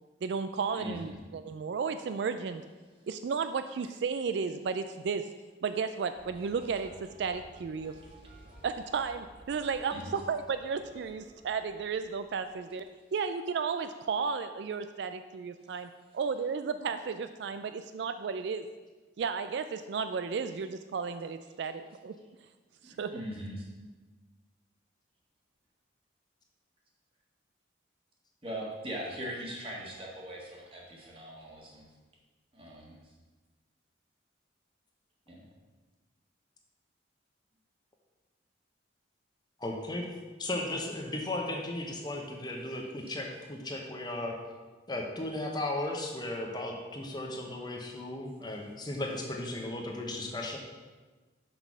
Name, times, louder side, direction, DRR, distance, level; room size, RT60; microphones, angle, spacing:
voice 1, 0.2-2.6 3.1-5.3 5.6-7.9 8.6-12.9 13.1-18.7 19.2-22.1 22.8-23.1, right 5 dB, 65° right, 10 dB, 0.3 m, -33 dB
sound 1, 6.1-12.8, right 1 dB, 45° right, 1.3 m, -55 dB
voice 2, 23.1-23.6 28.4-31.9 32.5-33.0 35.3-35.4, right 1 dB, 30° right, -3 dB, 1.6 m, -40 dB
voice 3, 39.6-40.1 40.4-44.4 44.9-50.6, left 1 dB, 20° left, 1 dB, 0.8 m, -35 dB
6.0 x 5.4 x 6.1 m, 1.3 s
head